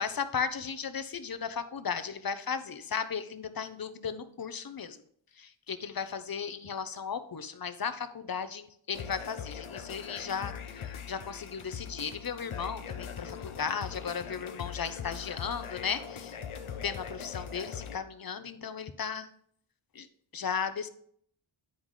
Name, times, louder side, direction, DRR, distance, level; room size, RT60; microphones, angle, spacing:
voice 1, 0.0-5.0 5.4-16.4 16.8-19.3 19.9-20.1 20.3-20.9, left 6 dB, 45° left, 12 dB, 0.7 m, -35 dB
sound 1, 8.9-18.0, left 7 dB, 85° left, 0.7 m, -41 dB
9.6 x 4.8 x 3.7 m, 0.64 s
wide cardioid pair, 60°, 48 cm